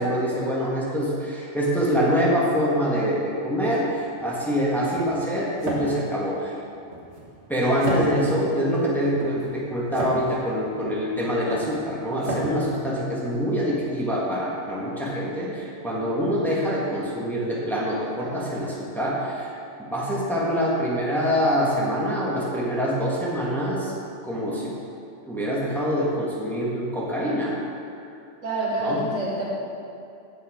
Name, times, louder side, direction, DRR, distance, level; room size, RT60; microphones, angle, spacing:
voice 1, 0.0-6.6 7.5-23.9 24.2-24.7 25.2-27.6 28.8-29.0, equal, ahead, -6 dB, 1.4 m, -25 dB
sound 1, 4.0-13.8, right 1 dB, 60° right, 1.7 m, -34 dB
voice 2, 28.4-29.4, right 1 dB, 80° right, -6 dB, 2.2 m, -26 dB
7.8 x 7.1 x 4.9 m, 2.5 s
omnidirectional pair, 1.3 m